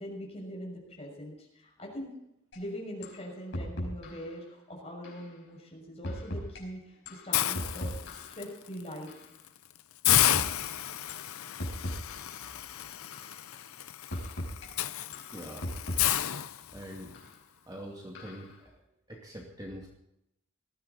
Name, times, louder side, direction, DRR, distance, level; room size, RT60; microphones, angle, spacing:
voice 1, 0.0-2.1 2.5-7.9 8.2-9.1 14.6-15.0, equal, 30° left, -1 dB, 6.4 m, -42 dB
sound 1, 2.5-2.6 3.0-3.2 3.5-4.3 5.0-5.3 6.0-6.6 7.1-8.4 9.1-9.3 10.1-10.6 11.1-11.3 11.6-12.4 13.1-13.4 14.1-14.7 15.1-16.4 17.1-17.3 18.2-18.5, equal, 60° left, 4.8 m, -38 dB
Hiss, 7.3-8.4 8.9-9.1 9.5-9.6 10.0-17.1, left 12 dB, 85° left, 0.6 m, -31 dB
voice 2, 15.3-16.4 16.7-17.2 17.7-19.9, equal, 20° right, -1 dB, 2.3 m, -45 dB
19.0 x 15.0 x 4.2 m, 0.81 s
head